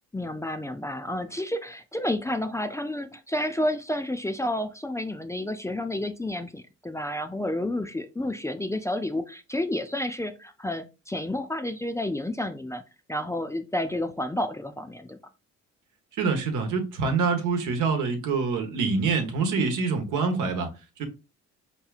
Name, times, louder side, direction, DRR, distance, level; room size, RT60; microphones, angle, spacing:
voice 1, 0.1-12.8 13.1-15.2, left 1 dB, 10° left, 0.4 m, -30 dB
voice 2, 16.2-20.7 21.0-21.1, right 4 dB, 85° right, 1.1 m, -25 dB
4.6 x 2.9 x 2.3 m
cardioid pair, 90°, 30 cm